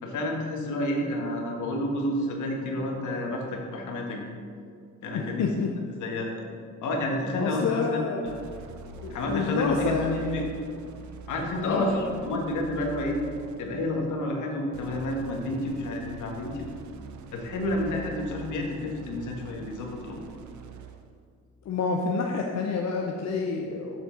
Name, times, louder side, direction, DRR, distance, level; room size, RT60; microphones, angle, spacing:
voice 1, 0.0-4.3 5.0-5.5 6.0-6.4 6.8-8.4 9.1-9.9 10.3-10.7 11.3-13.2 13.6-16.7 17.3-20.2, left 1 dB, 75° left, 1 dB, 1.5 m, -30 dB
voice 2, 5.1-5.7 7.4-8.2 8.9-10.5 11.6-12.0 21.7-24.0, left 5 dB, 60° left, 1 dB, 0.7 m, -28 dB
sound 1, 8.2-13.9 14.7-21.1, right 6 dB, 75° right, 0.7 m, -44 dB
7.4 x 6.7 x 3.9 m, 2.2 s
cardioid pair, 90°, 30 cm